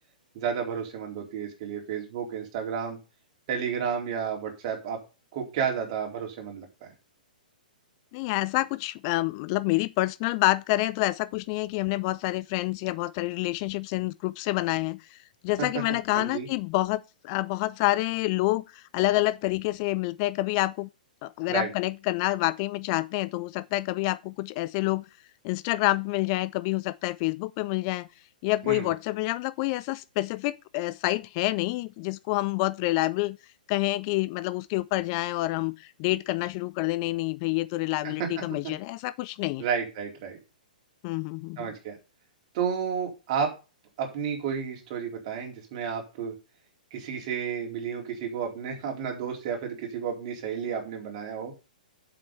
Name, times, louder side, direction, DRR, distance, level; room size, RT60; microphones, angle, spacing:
voice 1, 0.3-3.0 3.5-5.0 5.3-6.9 15.6-16.5 21.5-21.7 28.6-28.9 38.0-38.3 39.6-40.4 41.6-42.0 42.5-43.5 44.0-46.3 46.9-51.5, right 7 dB, 40° right, 3.9 m, -31 dB
voice 2, 8.1-15.2 15.4-20.9 21.2-25.0 25.4-28.1 28.4-33.4 33.7-39.6 41.0-41.7, left 19 dB, 35° left, 0.5 m, -28 dB
7.6 x 7.5 x 5.5 m
figure-of-eight pair, 115°, 5 cm